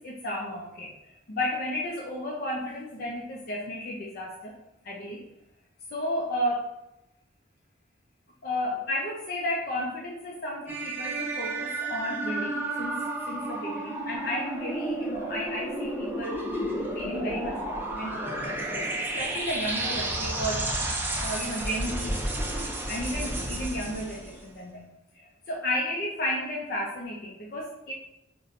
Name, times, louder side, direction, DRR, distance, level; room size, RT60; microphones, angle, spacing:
voice 1, 0.0-4.5 4.8-5.2 5.9-6.7 8.4-13.0 13.3-16.4 16.7-18.9 19.2-20.9 21.2-22.2 22.9-27.9, left 1 dB, 55° left, -3 dB, 0.5 m, -33 dB
sound 1, 10.7-24.4, right 1 dB, 10° right, 0.4 m, -32 dB
5.5 x 2.2 x 2.5 m, 0.87 s
head